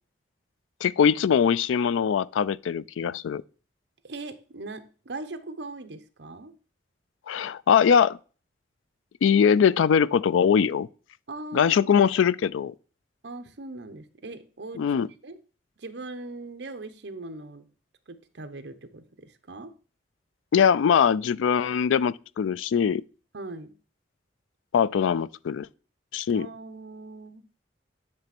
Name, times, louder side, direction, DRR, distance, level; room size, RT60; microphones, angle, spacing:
voice 1, 0.8-3.4 7.3-8.2 9.2-10.9 11.5-12.7 14.8-15.1 20.5-23.0 24.7-25.7 26.1-26.5, left 7 dB, 90° left, 0.3 m, -22 dB
voice 2, 4.0-6.5 11.3-12.1 13.2-14.9 15.2-15.4 15.8-17.7 18.1-19.7 23.3-23.7 26.3-27.4, right 2 dB, 70° right, 0.8 m, -40 dB
9.8 x 3.4 x 5.9 m
head